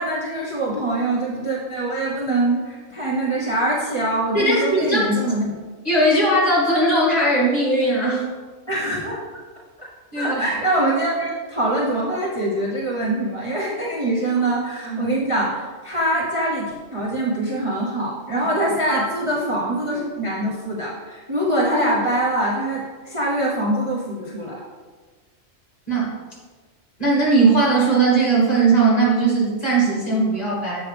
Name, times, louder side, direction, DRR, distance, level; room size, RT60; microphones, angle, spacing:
voice 1, 0.0-5.5 8.7-9.2 9.8-9.9 10.1-24.6, right 1 dB, 25° right, -6 dB, 0.9 m, -24 dB
voice 2, 4.3-5.0 5.8-8.3 10.1-10.4 14.8-15.1 18.9-19.0 25.9-26.1 27.0-30.8, right 2 dB, 30° left, -6 dB, 2.3 m, -18 dB
7.6 x 5.6 x 3.4 m, 1.4 s
omnidirectional pair, 1.4 m